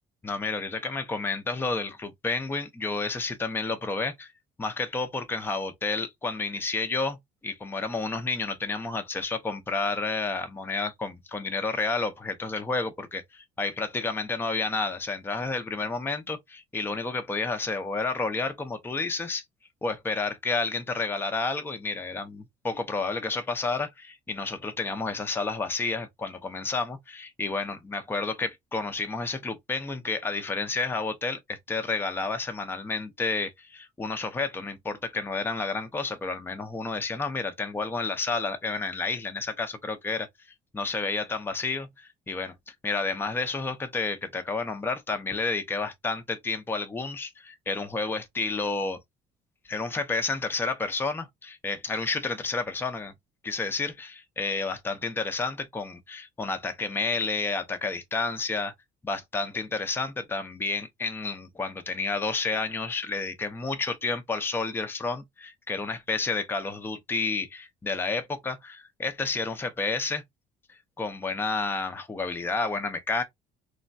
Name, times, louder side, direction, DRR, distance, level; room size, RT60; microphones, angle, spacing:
voice 1, 0.2-4.3 4.6-7.2 7.4-19.4 19.8-40.3 40.7-49.0 49.7-53.1 53.4-58.7 59.0-70.2 71.0-73.2, left 3 dB, 15° left, 0.5 m, -30 dB
3.2 x 2.2 x 2.5 m
cardioid pair, 110°, 17 cm